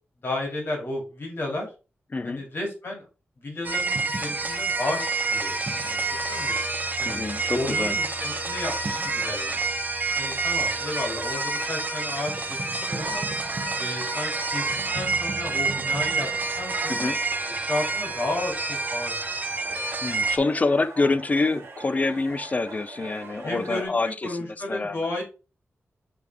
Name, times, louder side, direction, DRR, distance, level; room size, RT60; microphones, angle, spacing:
voice 1, 0.2-1.7 2.2-3.0 3.4-5.0 5.3-6.0 6.3-6.6 7.0-7.2 7.5-9.7 10.2-13.3 13.8-14.7 14.9-16.3 16.6-17.1 17.7-19.1 19.5-19.8 20.1-20.2 21.0-21.1 23.4-25.2, left 2 dB, 55° left, 2.9 m, -33 dB
voice 2, 2.1-2.4 7.0-8.0 16.9-17.2 20.0-24.4 24.7-25.0, left 3 dB, 35° left, 0.4 m, -26 dB
sound 1, 3.6-20.4, right 3 dB, 40° right, 0.9 m, -28 dB
sound 2, 12.9-23.9, right 4 dB, 75° right, 1.9 m, -44 dB
7.8 x 3.4 x 3.5 m
wide cardioid pair, 100°, 5 cm